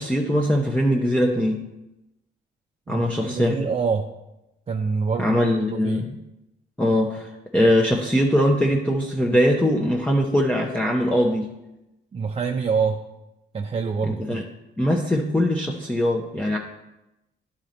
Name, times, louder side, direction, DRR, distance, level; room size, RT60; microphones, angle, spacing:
voice 1, 0.0-1.6 2.9-3.7 5.2-6.0 6.8-11.5 14.1-14.4 14.8-16.6, equal, 5° left, -1 dB, 0.7 m, -21 dB
voice 2, 3.3-4.1 4.7-6.1 12.1-13.0 13.5-14.4, right 5 dB, 30° right, 2 dB, 0.5 m, -26 dB
10.5 x 4.3 x 3.9 m, 0.94 s
cardioid pair, 90°, 20 cm